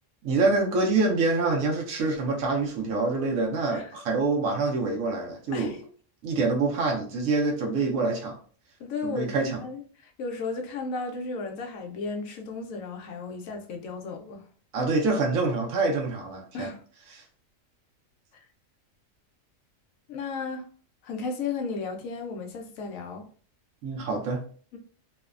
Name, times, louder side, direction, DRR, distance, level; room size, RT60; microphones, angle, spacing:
voice 1, 0.2-5.7 6.2-8.4 9.0-9.6 14.7-16.7 17.1-17.2 23.8-24.4, right 3 dB, 85° right, 1.0 m, -26 dB
voice 2, 8.8-14.5 16.5-16.8 18.3-18.4 20.1-20.7 21.0-23.2 24.7-24.8, left 4 dB, 80° left, 1.0 m, -34 dB
3.0 x 2.1 x 2.3 m
omnidirectional pair, 1.4 m